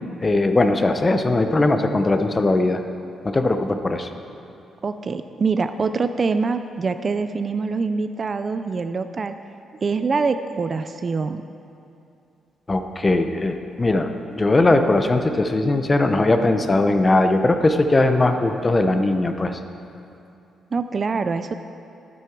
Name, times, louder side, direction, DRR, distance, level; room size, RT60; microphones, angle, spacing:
voice 1, 0.2-2.8 3.2-4.1 12.7-19.6, left 2 dB, 20° left, 7 dB, 0.6 m, -19 dB
voice 2, 4.8-9.3 9.8-11.4 20.7-21.5, right 4 dB, 35° right, 10 dB, 0.4 m, -24 dB
11.5 x 9.4 x 4.6 m, 2.7 s
cardioid pair, 125°, 0 cm